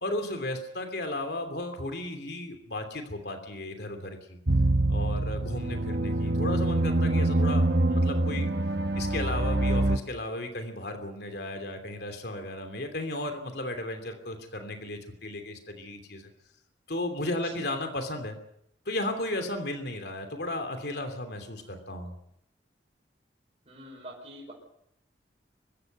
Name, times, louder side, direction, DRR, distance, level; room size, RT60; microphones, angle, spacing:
voice 1, 0.0-4.4 4.9-8.5 8.9-16.3 16.9-18.4 18.8-22.1, left 1 dB, 65° left, 6 dB, 3.0 m, -34 dB
sound 1, 4.5-10.0, right 2 dB, 60° right, 1.3 m, -25 dB
voice 2, 17.4-17.8 23.7-24.5, right 1 dB, 35° right, -3 dB, 5.3 m, -45 dB
24.0 x 13.5 x 9.4 m, 0.77 s
head